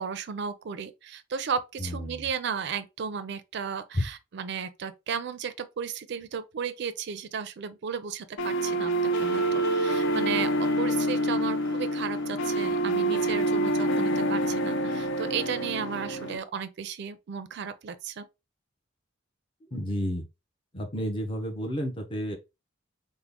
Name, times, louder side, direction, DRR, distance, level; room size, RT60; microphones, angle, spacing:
voice 1, 0.0-18.3, right 6 dB, 60° right, 0.4 m, -34 dB
voice 2, 1.8-2.3 3.9-4.1 19.7-20.2 20.7-22.4, equal, 25° left, 0.6 m, -31 dB
sound 1, 8.4-16.4, right 1 dB, 65° left, 0.5 m, -27 dB
3.6 x 2.1 x 3.5 m
head